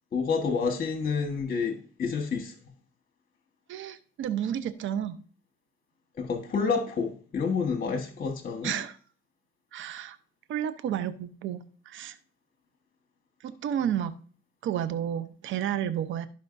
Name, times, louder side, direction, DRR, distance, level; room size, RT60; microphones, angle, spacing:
voice 1, 0.1-2.5 6.2-8.7, left 5 dB, 45° left, 1.4 m, -29 dB
voice 2, 3.7-5.2 8.6-9.0 9.7-10.2 10.5-12.2 13.4-14.1 14.6-16.3, right 10 dB, 80° right, 0.8 m, -31 dB
14.0 x 5.1 x 2.6 m
cardioid pair, 90°, 20 cm